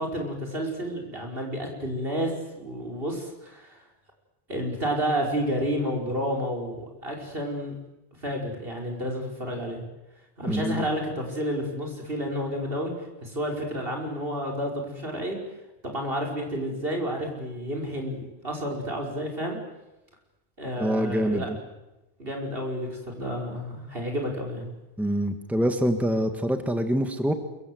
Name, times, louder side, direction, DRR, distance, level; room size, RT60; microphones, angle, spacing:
voice 1, 0.0-3.8 4.5-7.7 8.2-9.8 10.4-12.9 13.2-15.4 15.8-19.6 20.6-21.5 22.2-24.7, equal, 65° right, 1 dB, 5.7 m, -30 dB
voice 2, 10.5-10.8 20.8-21.6 25.0-27.3, equal, ahead, 7 dB, 1.7 m, -25 dB
27.5 x 24.0 x 7.9 m, 0.97 s
omnidirectional pair, 1.0 m